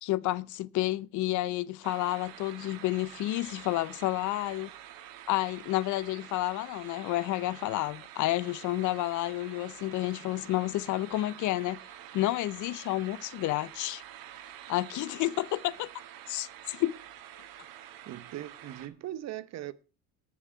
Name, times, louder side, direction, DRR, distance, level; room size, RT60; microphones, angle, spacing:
voice 1, 0.0-4.7 5.3-11.8 12.1-14.0 14.7-15.9 16.3-16.9, left 16 dB, 55° left, 0.7 m, -30 dB
sound 1, 1.8-18.9, right 11 dB, 70° right, 2.0 m, -48 dB
voice 2, 18.1-19.7, right 13 dB, 45° right, 1.0 m, -39 dB
18.5 x 6.4 x 4.6 m
cardioid pair, 140°, 36 cm